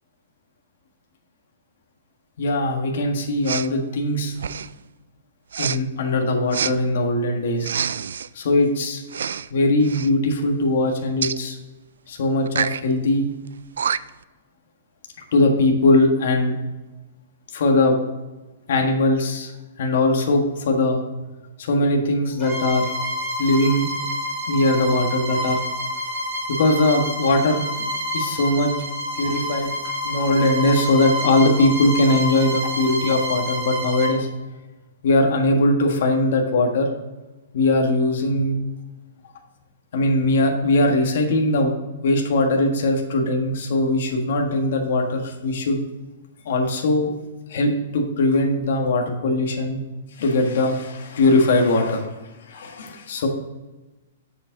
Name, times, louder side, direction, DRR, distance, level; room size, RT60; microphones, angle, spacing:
voice 1, 2.4-4.3 5.6-7.7 8.3-9.0 9.5-11.6 12.1-13.3 15.3-16.5 17.5-18.0 18.7-19.5 19.8-21.0 21.6-22.9 23.4-23.9 24.5-25.6 26.5-27.9 28.1-28.7 29.2-29.7 30.0-34.3 35.0-36.9 37.5-38.6 39.9-41.7 42.0-45.8 46.4-47.1 47.5-49.8 50.2-52.1 52.5-53.3, left 2 dB, 55° left, 2 dB, 1.5 m, -20 dB
Respiratory sounds, 3.4-3.7 4.3-4.8 5.5-5.8 6.5-6.7 7.6-8.3 9.1-9.5 9.8-10.1 11.2-11.4 12.5-12.8 13.5-13.6 13.8-14.2, right 7 dB, 85° right, 0.3 m, -26 dB
Bowed string instrument, 22.4-34.2, left 1 dB, 20° right, 2.1 m, -28 dB
7.3 x 7.0 x 3.9 m, 1.1 s
hypercardioid pair, 170°, 0 cm